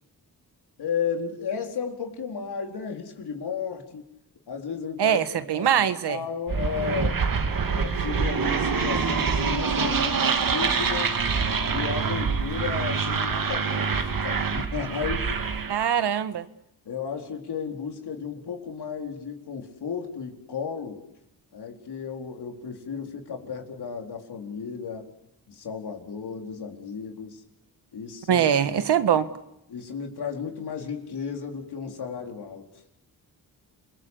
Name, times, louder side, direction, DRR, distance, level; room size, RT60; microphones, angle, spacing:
voice 1, 0.8-4.0 4.5-5.2 5.6-7.2 7.7-11.2 11.6-15.3 16.8-21.0 21.5-25.1 25.5-27.4 27.9-28.5 29.7-32.8, left 6 dB, 80° left, 2 dB, 4.4 m, -34 dB
voice 2, 5.0-6.2 15.7-16.4 28.3-29.3, right 9 dB, 90° right, 11 dB, 1.6 m, -22 dB
sound 1, 6.5-15.9, right 5 dB, 55° right, 2.3 m, -25 dB
29.0 x 22.0 x 8.3 m, 0.83 s
cardioid pair, 70°, 39 cm